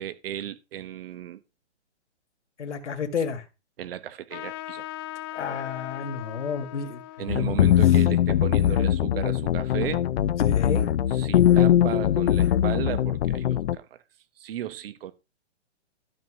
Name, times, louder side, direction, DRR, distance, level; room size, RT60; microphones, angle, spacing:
voice 1, 0.0-1.4 3.8-4.8 7.2-10.0 11.1-14.0 14.4-15.1, right 11 dB, 55° right, 1.3 m, -35 dB
voice 2, 2.6-3.4 5.3-7.0 7.3-7.4 10.4-10.8, left 6 dB, 75° left, 2.3 m, -30 dB
Trumpet, 4.3-9.3, left 15 dB, 20° left, 0.6 m, -40 dB
sound 1, 7.3-13.7, left 11 dB, 60° left, 0.7 m, -21 dB
12.5 x 4.5 x 6.3 m
hypercardioid pair, 145°, 35 cm